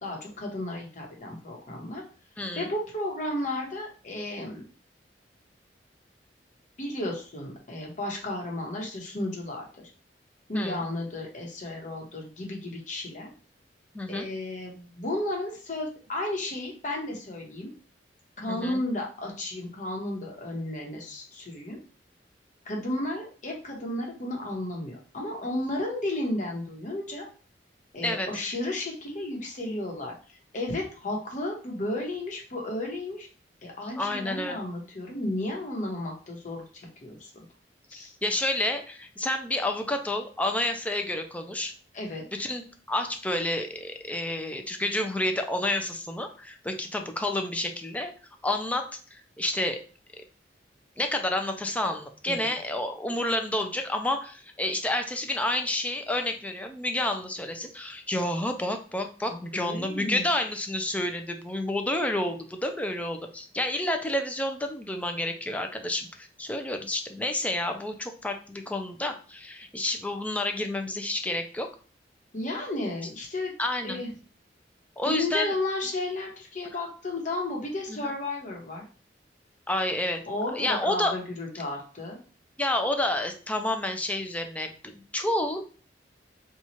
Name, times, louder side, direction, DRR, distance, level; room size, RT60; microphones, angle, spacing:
voice 1, 0.0-2.0 2.5-4.6 6.8-9.9 10.5-13.3 14.1-17.7 18.4-21.8 22.6-27.3 27.9-30.1 30.5-33.3 33.6-36.6 37.0-37.4 37.9-38.1 41.9-42.2 52.3-52.5 59.5-60.2 72.3-73.5 73.8-74.1 75.0-78.8 80.3-82.2, left 1 dB, 45° left, 0 dB, 1.0 m, -33 dB
voice 2, 2.4-2.7 10.5-10.8 13.9-14.3 18.5-18.8 28.0-28.3 34.0-34.7 38.2-41.7 42.3-42.6 42.9-48.1 48.4-49.8 51.0-71.7 73.6-74.0 75.0-75.5 77.9-78.1 79.7-80.2 80.5-81.1 82.6-85.6, left 1 dB, 10° left, 5 dB, 0.4 m, -29 dB
3.0 x 2.4 x 4.1 m, 0.38 s
head